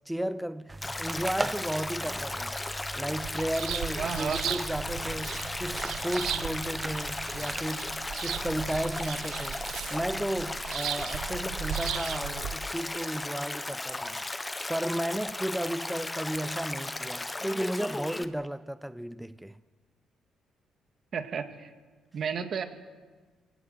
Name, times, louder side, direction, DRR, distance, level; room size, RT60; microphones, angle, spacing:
voice 1, 0.1-2.6 3.0-9.6 9.9-14.2 14.7-19.6, right 1 dB, 5° right, 0.7 m, -34 dB
sound 1, 0.7-7.7, right 2 dB, 20° right, 1.2 m, -40 dB
Stream, 0.8-18.3, left 2 dB, 15° left, 1.3 m, -36 dB
sound 2, 3.2-12.6, right 9 dB, 85° right, 1.0 m, -37 dB
voice 2, 4.0-4.6 21.1-21.7 22.1-22.6, right 6 dB, 55° right, 2.2 m, -32 dB
25.5 x 17.5 x 7.9 m
cardioid pair, 90°, 0 cm